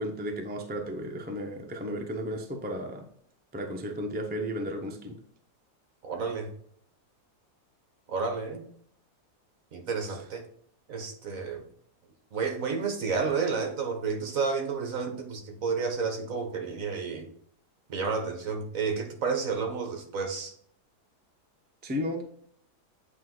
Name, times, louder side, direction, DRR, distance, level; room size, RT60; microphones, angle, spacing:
voice 1, 0.0-3.1 3.5-5.2 10.1-10.2 21.8-22.2, equal, 15° right, 2 dB, 0.4 m, -34 dB
voice 2, 6.0-6.5 8.1-8.7 9.7-10.4 10.9-11.6 12.3-17.3 17.9-20.5, right 5 dB, 55° right, 4 dB, 1.5 m, -31 dB
8.3 x 3.1 x 3.8 m, 0.63 s
omnidirectional pair, 1.7 m